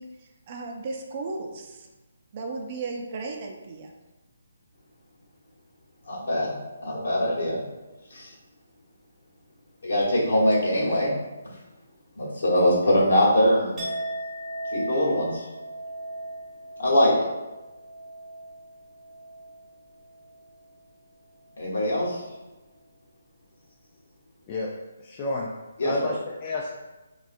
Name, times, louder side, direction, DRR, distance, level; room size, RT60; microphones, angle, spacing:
voice 1, 0.0-1.9 2.3-3.9, right 3 dB, 40° right, 2 dB, 0.4 m, -35 dB
voice 2, 6.0-7.6 8.1-8.3 9.8-11.1 11.5-11.6 12.1-13.8 14.7-15.5 16.8-17.2 21.6-22.3 25.8-26.1, left 1 dB, 70° left, -6 dB, 1.2 m, -23 dB
Chink clink, 13.8-19.7 20.0-20.4, right 1 dB, 15° right, 1.0 m, -37 dB
voice 3, 25.0-25.5 25.8-26.7, left 2 dB, 30° left, -3 dB, 0.3 m, -30 dB
3.5 x 2.4 x 2.5 m, 1.1 s
figure-of-eight pair, 150°, 0 cm